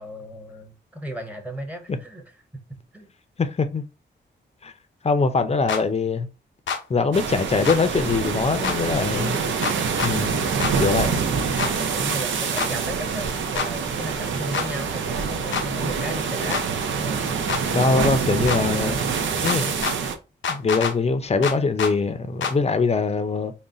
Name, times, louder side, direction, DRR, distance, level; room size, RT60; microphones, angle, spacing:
voice 1, 0.0-2.4 2.7-3.1 11.9-16.7 17.0-17.3, right 1 dB, 10° right, 0.9 m, -35 dB
voice 2, 3.4-3.8 4.6-4.7 5.0-6.3 6.9-9.4 10.0-10.5 10.8-11.2 17.7-19.0 19.3-19.7 20.5-23.5, left 4 dB, 35° left, 0.5 m, -22 dB
sound 1, 5.7-5.8 6.7-6.8 7.7-7.8 8.6-8.8 9.6-10.1 10.6-10.7 11.6-11.7 12.6-12.7 13.6-13.7 14.5-14.7 15.5-15.7 16.5-16.6 17.5-17.6 18.5-18.6 19.5-20.0 20.4-20.9 21.4-21.9 22.4-22.6, left 6 dB, 90° left, 0.6 m, -26 dB
sound 2, 7.1-20.2, right 5 dB, 90° right, 0.6 m, -25 dB
3.9 x 2.1 x 3.7 m
wide cardioid pair, 110°, 19 cm